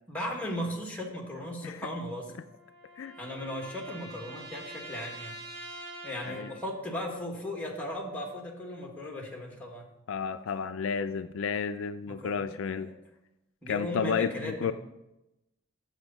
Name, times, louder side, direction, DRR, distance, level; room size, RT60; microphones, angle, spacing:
voice 1, 0.1-2.3 3.2-5.4 6.0-9.9 12.1-12.9 13.6-14.7, left 1 dB, 10° left, 0 dB, 1.5 m, -37 dB
sound 1, 2.1-6.9, right 1 dB, 75° right, 3.4 m, -45 dB
voice 2, 10.1-12.9 13.7-14.7, left 6 dB, 65° left, 10 dB, 0.4 m, -32 dB
8.0 x 6.9 x 5.4 m, 0.94 s
head